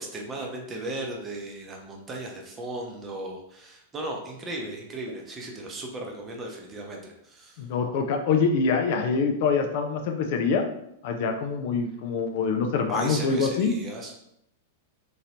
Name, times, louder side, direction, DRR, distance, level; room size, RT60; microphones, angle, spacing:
voice 1, 0.0-7.6 12.9-14.1, right 1 dB, 20° right, 0 dB, 0.7 m, -36 dB
sound 1, 5.1-5.2 6.0-6.1 6.9-7.0 7.8-7.9 8.8-8.9 9.7-9.8, right 1 dB, 65° left, 1.3 m, -45 dB
voice 2, 7.6-10.7 11.0-13.8, left 5 dB, 50° left, 4 dB, 0.4 m, -25 dB
3.0 x 2.8 x 2.8 m, 0.78 s
figure-of-eight pair, 95°, 0 cm